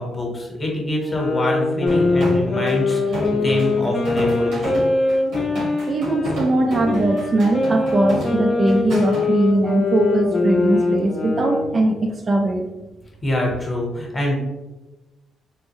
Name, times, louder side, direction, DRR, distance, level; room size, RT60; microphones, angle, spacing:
voice 1, 0.0-4.7 13.2-14.4, left 1 dB, 25° left, -1 dB, 0.9 m, -25 dB
sound 1, 1.0-6.4 6.8-11.7, left 3 dB, 40° left, 0.5 m, -22 dB
sound 2, 1.9-9.3, right 1 dB, 90° right, 1.4 m, -29 dB
voice 2, 5.9-12.6, right 2 dB, 40° right, 3 dB, 0.4 m, -20 dB
3.5 x 2.1 x 3.0 m, 1.1 s
cardioid pair, 90°, 0 cm